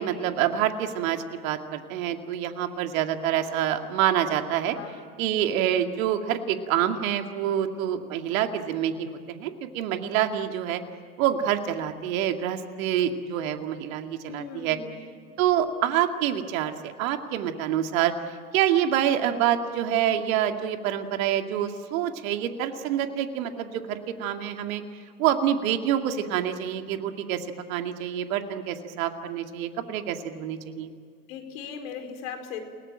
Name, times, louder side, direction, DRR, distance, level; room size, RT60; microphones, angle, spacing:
voice 1, 0.0-4.8 5.2-10.8 11.2-14.8 15.4-18.1 18.5-24.8 25.2-30.9, right 10 dB, 65° right, 6 dB, 2.4 m, -27 dB
voice 2, 4.7-5.0 14.3-15.0 31.3-32.6, left 6 dB, 65° left, 7 dB, 4.8 m, -38 dB
29.5 x 19.0 x 9.0 m, 2.1 s
hypercardioid pair, 100°, 44 cm